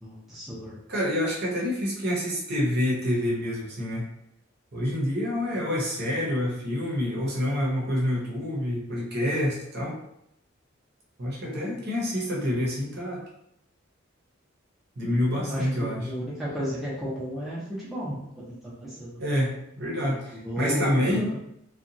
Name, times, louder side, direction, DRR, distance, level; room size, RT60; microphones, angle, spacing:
voice 1, 0.0-0.8 15.5-19.2 20.0-21.4, equal, ahead, -9 dB, 0.6 m, -34 dB
voice 2, 0.9-4.0 4.7-9.9 11.2-13.2 15.0-16.1 19.2-19.5 19.8-21.3, left 1 dB, 50° right, -4 dB, 0.8 m, -27 dB
2.7 x 2.3 x 2.6 m, 0.78 s
head